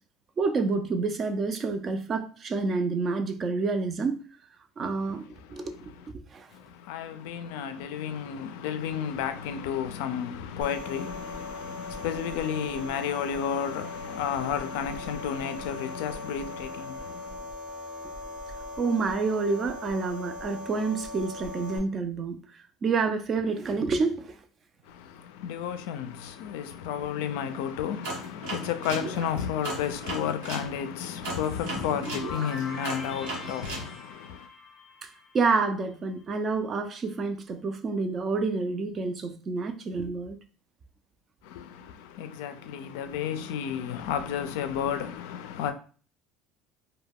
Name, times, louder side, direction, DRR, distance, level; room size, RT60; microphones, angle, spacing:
voice 1, 0.4-4.2 4.8-5.2 5.5-5.8 6.3-6.5 18.8-24.4 35.0-35.1 35.3-40.4, right 4 dB, 35° right, 0.4 m, -28 dB
voice 2, 5.0-6.1 6.5-17.5 24.8-34.5 41.4-45.7, left 8 dB, 80° left, 0.3 m, -32 dB
sound 1, 10.6-21.8, left 2 dB, 60° right, 0.7 m, -40 dB
sound 2, 28.0-30.7 31.2-33.9, right 2 dB, 90° right, 0.9 m, -36 dB
sound 3, 31.4-36.2, left 3 dB, 25° left, 0.6 m, -44 dB
2.2 x 2.1 x 3.4 m
supercardioid pair, 115°, 0 cm